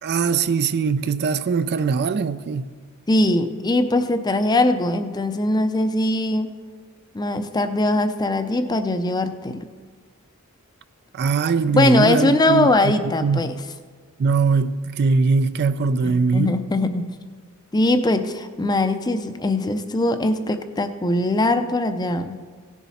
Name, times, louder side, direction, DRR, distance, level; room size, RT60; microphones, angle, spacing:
voice 1, 0.0-2.7 11.1-12.9 13.2-13.5 14.2-16.6, right 4 dB, 50° right, 0.4 m, -21 dB
voice 2, 3.1-6.5 7.1-9.6 11.7-13.5 16.0-17.1 17.7-22.4, left 2 dB, 20° left, 0.5 m, -21 dB
17.0 x 7.2 x 4.2 m
head